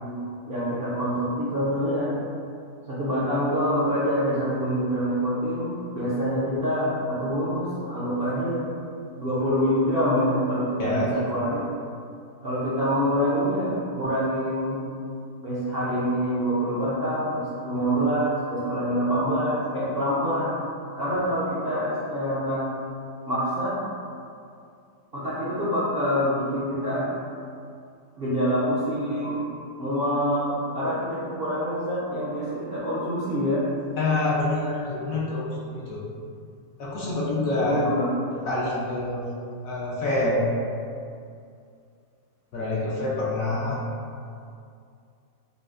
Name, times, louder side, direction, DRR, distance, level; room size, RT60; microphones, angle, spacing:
voice 1, 0.0-2.1 2.9-8.6 9.2-11.7 12.4-14.8 15.4-20.6 21.0-22.7 23.3-23.8 25.1-27.1 28.2-29.5 29.8-33.6 37.6-38.1, equal, 60° right, -10 dB, 0.6 m, -26 dB
voice 2, 10.8-11.1 34.0-36.1 36.8-37.8 38.5-39.3 39.6-40.5 42.5-43.8, left 2 dB, 65° left, -6 dB, 0.9 m, -26 dB
5.5 x 2.0 x 2.4 m, 2.4 s
omnidirectional pair, 1.7 m